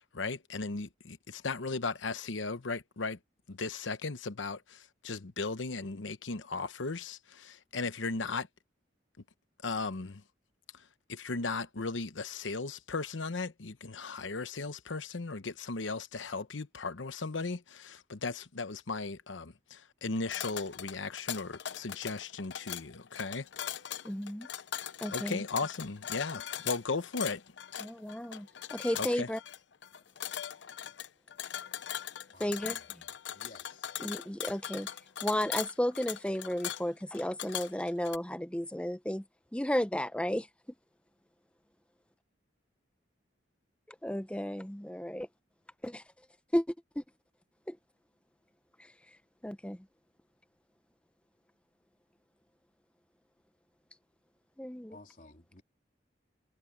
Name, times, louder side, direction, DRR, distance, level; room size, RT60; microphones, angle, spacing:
voice 1, 0.0-3.2 3.5-8.5 9.6-10.2 10.7-23.5 25.1-27.4 28.9-29.3, left 3 dB, 85° left, 1.0 m, -36 dB
sound 1, 20.2-38.2, left 10 dB, 70° left, 0.6 m, -40 dB
voice 2, 24.0-24.5 25.0-25.4 27.8-29.4 32.4-33.0 34.0-34.9 35.2-39.2 39.5-40.5 44.0-45.3 45.8-46.0 46.5-47.0 47.7-47.8 48.8-48.9 49.4-49.9 54.6-55.0, equal, 5° left, 0.6 m, -33 dB
voice 3, 32.3-32.9 33.3-33.9 54.9-55.6, left 2 dB, 45° left, 3.7 m, -55 dB
head